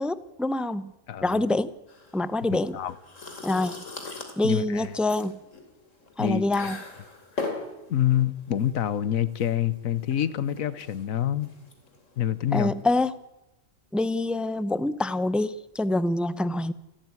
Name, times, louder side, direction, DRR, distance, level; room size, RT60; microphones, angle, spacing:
voice 1, 0.0-0.9 1.2-1.7 2.1-2.8 3.4-3.8 4.4-5.4 6.2-6.8 12.5-13.1 13.9-16.7, left 2 dB, ahead, 0.4 m, -26 dB
voice 2, 1.1-1.4 2.5-2.9 4.4-4.9 6.2-6.5 7.9-11.5 12.2-12.7, left 10 dB, 90° left, 1.4 m, -26 dB
sound 1, 1.9-12.8, left 3 dB, 70° left, 3.4 m, -40 dB
29.0 x 12.0 x 9.6 m
omnidirectional pair, 1.4 m